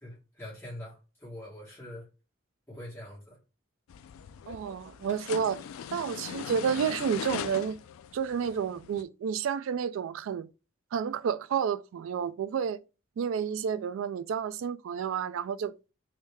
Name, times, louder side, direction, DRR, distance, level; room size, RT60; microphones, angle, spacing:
voice 1, 0.0-2.1 2.7-3.4, left 1 dB, 10° left, 1.4 m, -44 dB
sound 1, 3.9-9.0, left 8 dB, 90° left, 0.3 m, -40 dB
voice 2, 4.5-5.6 5.9-7.8 8.1-10.5 10.9-12.8 13.2-15.7, right 7 dB, 75° right, 0.3 m, -30 dB
3.3 x 2.7 x 3.3 m
head